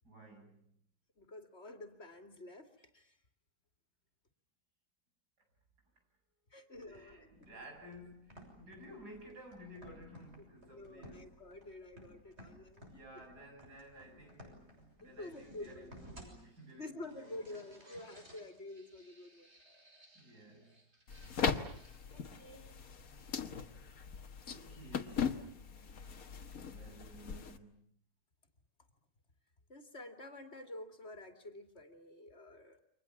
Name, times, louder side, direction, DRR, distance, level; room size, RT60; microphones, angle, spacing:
voice 1, 0.0-0.8 6.9-11.3 12.9-17.6 20.2-20.8 23.6-24.1 24.5-25.4 26.7-27.8, equal, 80° right, 3 dB, 8.6 m, -55 dB
voice 2, 1.2-3.2 6.5-7.3 10.7-12.9 15.0-15.9 16.8-19.5 29.7-32.8, left 2 dB, 40° left, 6 dB, 2.9 m, -49 dB
sound 1, 6.7-22.7, equal, 40° right, 7.0 m, -58 dB
sound 2, 21.1-27.6, left 6 dB, 60° left, 1.8 m, -39 dB
29.5 x 25.0 x 7.2 m, 0.65 s
omnidirectional pair, 1.7 m